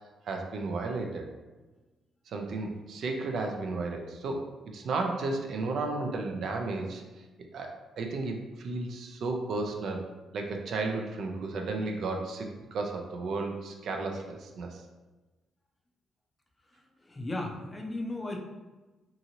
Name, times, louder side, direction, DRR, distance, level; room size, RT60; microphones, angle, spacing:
voice 1, 0.2-1.2 2.3-4.5 4.7-7.0 7.5-10.0 10.3-14.8, right 3 dB, 65° right, 2 dB, 0.4 m, -33 dB
voice 2, 17.0-18.4, left 2 dB, 20° left, 1 dB, 0.5 m, -35 dB
2.8 x 2.5 x 2.8 m, 1.2 s
cardioid pair, 90°, 0 cm